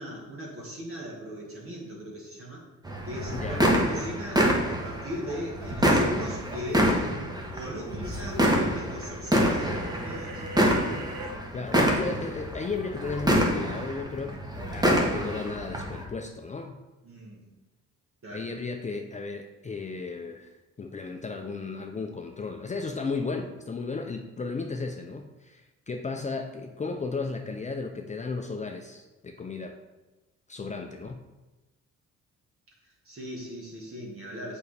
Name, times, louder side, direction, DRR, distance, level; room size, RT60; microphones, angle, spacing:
voice 1, 0.0-2.6 3.1-7.2 7.5-10.4 17.0-17.5 18.2-18.5 33.1-34.6, left 1 dB, 45° right, -3 dB, 1.9 m, -38 dB
sound 1, 2.8-16.0, equal, 15° right, 1.1 m, -26 dB
voice 2, 3.3-3.7 11.5-14.4 14.7-16.8 18.3-20.5 20.8-29.8 30.5-31.2, left 4 dB, 25° left, 4 dB, 0.5 m, -34 dB
sound 2, 9.2-11.3, right 2 dB, 80° right, 1.0 m, -40 dB
7.1 x 5.3 x 3.4 m, 1.1 s
cardioid pair, 90°, 30 cm